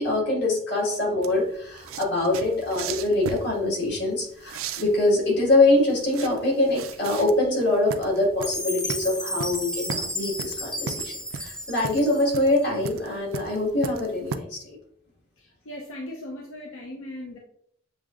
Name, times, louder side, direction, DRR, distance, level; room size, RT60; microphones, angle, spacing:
voice 1, 0.0-11.1 11.4-14.8, left 2 dB, 55° left, -3 dB, 1.7 m, -24 dB
sound 1, 1.2-14.4, right 6 dB, 85° right, 0.4 m, -37 dB
Chime, 8.4-12.7, equal, 5° left, 0.3 m, -33 dB
voice 2, 15.4-17.4, left 1 dB, 85° left, 0 dB, 0.7 m, -38 dB
7.4 x 2.8 x 2.4 m, 0.67 s
head